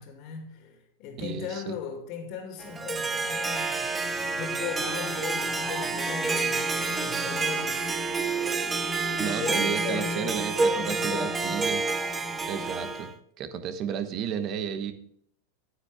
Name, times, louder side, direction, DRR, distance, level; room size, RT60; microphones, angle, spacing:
voice 1, 0.0-4.0 4.3-8.0 9.2-11.8, left 7 dB, 50° left, 2.4 m, -38 dB
voice 2, 1.2-1.7 9.2-11.8 12.5-13.1 13.4-14.9, right 8 dB, 40° right, 1.1 m, -32 dB
Harp, 2.6-13.1, right 4 dB, 15° right, 0.8 m, -29 dB
sound 1, 2.7-12.9, left 4 dB, 5° left, 2.0 m, -40 dB
9.4 x 9.1 x 3.5 m
hypercardioid pair, 120°, 0 cm